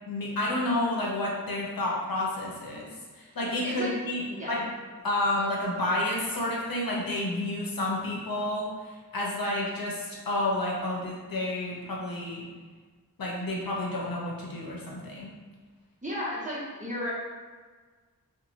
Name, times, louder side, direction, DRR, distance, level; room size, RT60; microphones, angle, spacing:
voice 1, 0.1-2.9 3.1-4.6 5.0-12.4 13.2-15.3, left 1 dB, 75° left, -3 dB, 0.7 m, -30 dB
voice 2, 3.6-3.9 4.3-4.5 16.0-17.1, left 1 dB, 20° right, -7 dB, 1.0 m, -33 dB
2.6 x 2.3 x 2.9 m, 1.5 s
wide cardioid pair, 40°, 35 cm